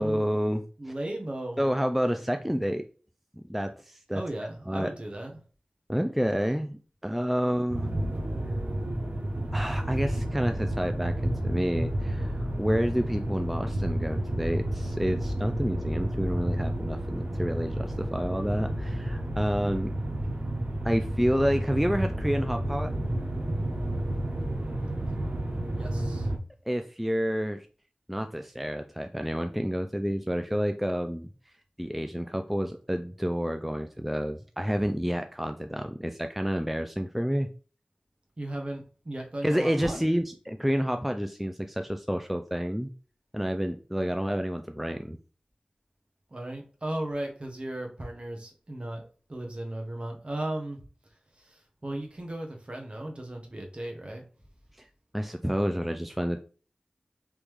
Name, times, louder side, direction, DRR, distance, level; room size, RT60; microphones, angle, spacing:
voice 1, 0.0-0.6 1.6-2.8 3.3-4.2 4.7-4.9 5.9-7.9 9.5-19.9 20.8-22.9 26.7-27.7 28.1-31.3 31.8-37.5 39.4-42.9 43.3-45.2 55.1-56.4, equal, 5° right, 6 dB, 0.3 m, -29 dB
voice 2, 0.8-1.6 4.1-5.3 25.7-26.3 38.4-40.0 46.3-49.0 49.3-50.8 51.4-54.2, right 1 dB, 40° right, 2 dB, 1.0 m, -36 dB
sound 1, 7.7-26.4, right 1 dB, 65° right, 0.8 m, -31 dB
3.6 x 3.0 x 3.1 m, 0.39 s
wide cardioid pair, 50°, 3 cm